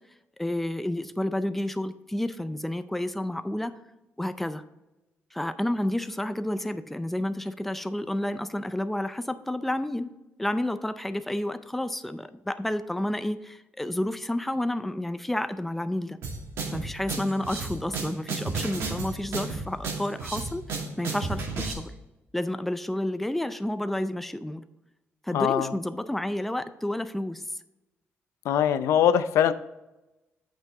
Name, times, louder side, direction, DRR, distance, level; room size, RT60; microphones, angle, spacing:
voice 1, 0.4-3.7 4.2-4.6 5.3-10.1 10.4-16.2 16.7-21.9 22.3-24.6 25.2-27.4, left 1 dB, 5° left, 11 dB, 0.4 m, -30 dB
sound 1, 16.2-21.7, right 4 dB, 70° right, 2.2 m, -32 dB
voice 2, 25.3-25.7 28.4-29.5, left 9 dB, 85° left, 13 dB, 0.5 m, -22 dB
8.8 x 5.6 x 3.8 m, 1.0 s
cardioid pair, 140°, 5 cm